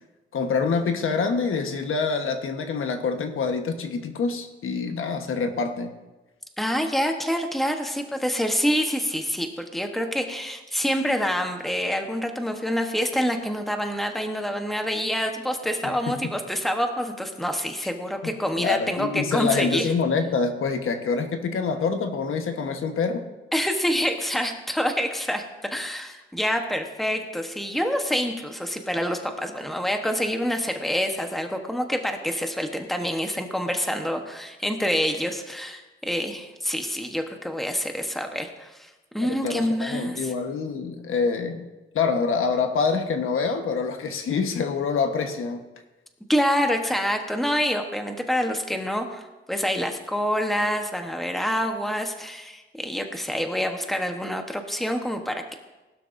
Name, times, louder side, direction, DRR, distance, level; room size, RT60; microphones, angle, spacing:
voice 1, 0.3-5.9 18.6-23.3 39.4-41.6 41.9-45.6, left 5 dB, 80° left, 6 dB, 1.2 m, -26 dB
voice 2, 6.6-19.9 23.5-25.4 25.7-40.3 46.3-55.6, equal, ahead, 4 dB, 1.1 m, -27 dB
20.0 x 12.0 x 2.6 m, 1.1 s
wide cardioid pair, 150°, 21 cm